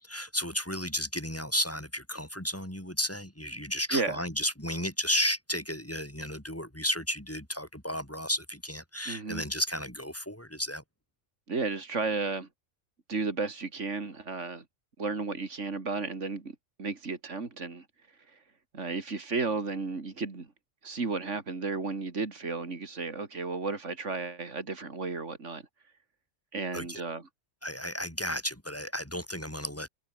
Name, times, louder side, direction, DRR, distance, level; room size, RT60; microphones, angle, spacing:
voice 1, 0.0-10.8 26.7-27.0 27.6-29.9, equal, 10° left, 4.2 m, -33 dB
voice 2, 3.9-4.2 9.1-9.4 11.5-12.5 13.1-14.6 15.0-16.5 16.8-17.9 18.3-18.4 18.7-20.5 20.8-25.6 26.5-27.2, right 4 dB, 80° right, 3.0 m, -33 dB
omnidirectional pair, 1.2 m